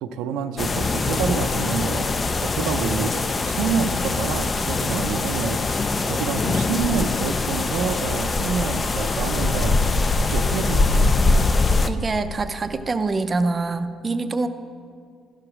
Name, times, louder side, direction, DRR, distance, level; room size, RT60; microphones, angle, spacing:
voice 1, 0.0-9.8 10.2-11.1, right 7 dB, 90° right, 9 dB, 0.4 m, -28 dB
sound 1, 0.6-11.9, left 3 dB, 30° left, 0.4 m, -22 dB
voice 2, 11.9-14.5, right 3 dB, 30° right, 9 dB, 0.5 m, -25 dB
12.0 x 4.9 x 6.0 m, 2.2 s
cardioid pair, 100°, 0 cm